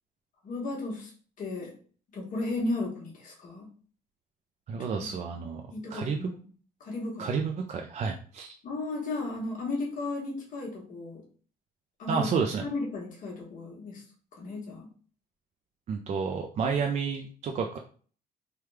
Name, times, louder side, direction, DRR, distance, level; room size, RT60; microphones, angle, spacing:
voice 1, 0.4-1.1 1.4-1.7 2.1-3.7 4.8-5.1 5.7-6.4 6.8-7.3 8.6-11.2 12.0-14.0 14.3-14.9, left 2 dB, 50° left, -3 dB, 1.1 m, -35 dB
voice 2, 4.7-5.6 5.9-6.3 7.2-8.5 12.1-12.7 15.9-17.8, right 5 dB, 45° right, 2 dB, 0.4 m, -30 dB
3.3 x 2.2 x 3.2 m, 0.43 s
cardioid pair, 110°, 17 cm